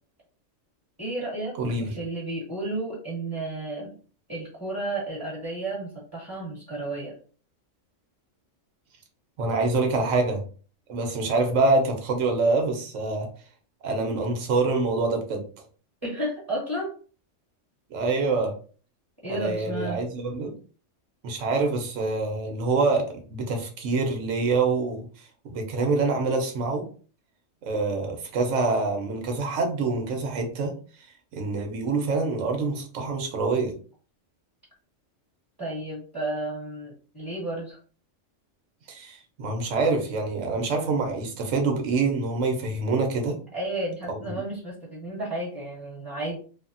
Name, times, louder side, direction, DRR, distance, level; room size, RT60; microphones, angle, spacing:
voice 1, 1.0-1.6 2.0-3.9 4.3-7.1 16.0-16.9 19.2-20.0 35.6-37.8 43.5-46.4, right 2 dB, 15° right, -6 dB, 1.3 m, -32 dB
voice 2, 1.6-2.0 9.4-10.4 10.9-13.3 13.8-15.4 17.9-18.6 19.3-20.5 21.2-26.8 27.6-30.7 31.3-33.7 38.9-43.4 44.1-44.2, right 3 dB, 80° right, 3 dB, 1.1 m, -26 dB
3.3 x 2.1 x 2.5 m, 0.39 s
omnidirectional pair, 1.3 m